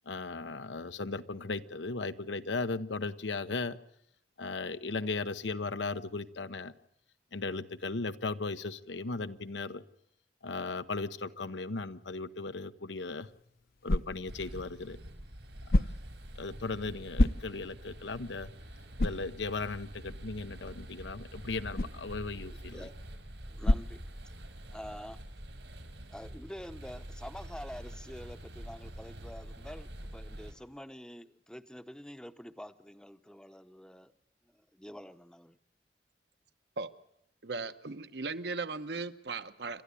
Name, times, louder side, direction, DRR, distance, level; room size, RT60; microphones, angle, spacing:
voice 1, 0.1-3.8 4.4-6.7 7.3-9.8 10.4-13.3 13.8-15.0 16.4-18.5 19.0-22.8, left 3 dB, 90° left, 12 dB, 0.9 m, -37 dB
sound 1, 13.0-24.7, left 1 dB, 55° left, 0.8 m, -34 dB
sound 2, 14.3-30.5, right 1 dB, 85° right, 4.4 m, -46 dB
voice 2, 23.5-24.0 24.7-25.2 26.1-34.1 34.7-35.6, equal, 5° left, 11 dB, 0.7 m, -47 dB
voice 3, 37.4-39.8, right 4 dB, 70° right, 10 dB, 1.0 m, -37 dB
28.5 x 12.5 x 8.3 m, 0.78 s
head